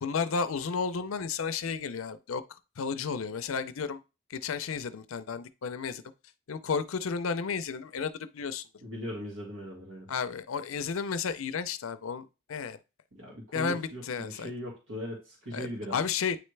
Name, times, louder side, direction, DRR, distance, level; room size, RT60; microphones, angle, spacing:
voice 1, 0.0-2.4 2.8-4.0 4.3-6.0 6.5-8.6 10.1-12.8 13.5-14.5 15.5-16.4, left 5 dB, 75° left, 0.5 m, -32 dB
voice 2, 8.8-10.1 13.1-16.0, equal, 70° right, 1.9 m, -39 dB
8.9 x 3.2 x 3.3 m
head